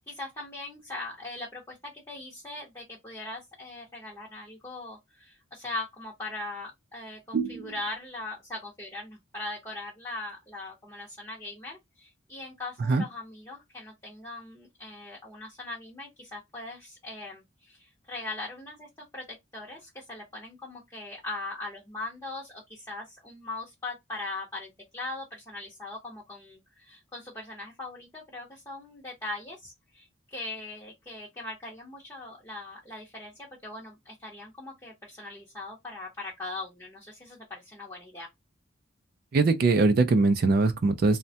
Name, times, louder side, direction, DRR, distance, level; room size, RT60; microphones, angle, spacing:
voice 1, 0.1-19.2 19.5-38.3, left 2 dB, 15° left, 0.6 m, -40 dB
voice 2, 7.3-7.7 12.9-13.0 39.3-41.2, right 3 dB, 45° right, 0.3 m, -22 dB
3.2 x 2.1 x 2.7 m
head